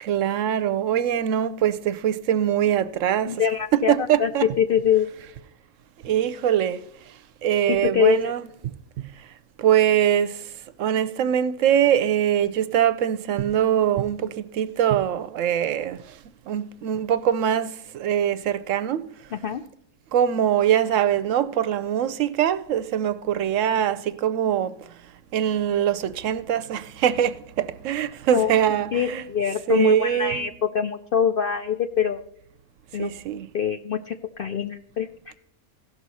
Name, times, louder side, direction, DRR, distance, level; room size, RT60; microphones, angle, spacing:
voice 1, 0.0-3.3 3.7-4.4 6.0-6.8 7.4-8.5 9.6-10.4 10.8-16.0 16.5-19.0 20.1-24.7 25.3-29.2 29.7-30.5 33.0-33.5, right 10 dB, 70° right, 0.9 m, -23 dB
voice 2, 3.3-4.3 4.6-5.1 7.7-8.3 19.3-19.6 28.3-28.5 28.9-32.2 32.9-33.1 33.5-35.3, left 8 dB, 65° left, 0.5 m, -24 dB
16.5 x 6.2 x 4.1 m
omnidirectional pair, 1.5 m